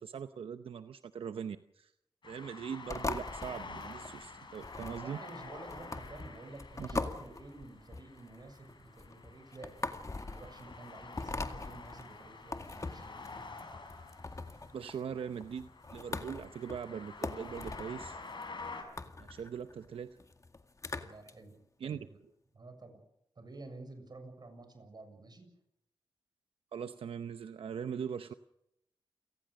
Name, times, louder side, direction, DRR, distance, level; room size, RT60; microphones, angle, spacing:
voice 1, 0.0-1.9 2.2-5.2 6.8-6.9 14.7-18.2 19.2-20.2 21.8-22.1 26.7-28.3, right 7 dB, 90° right, 10 dB, 0.8 m, -41 dB
sound 1, 2.2-18.8, left 3 dB, 60° left, 5.9 m, -49 dB
sound 2, 2.9-21.3, left 3 dB, 35° left, 2.0 m, -42 dB
voice 2, 4.8-9.9 10.3-13.2 20.9-22.2 22.5-23.0 23.4-25.5, right 2 dB, 50° right, 7 dB, 7.0 m, -51 dB
29.0 x 18.0 x 6.5 m, 0.80 s
cardioid pair, 70°, 9 cm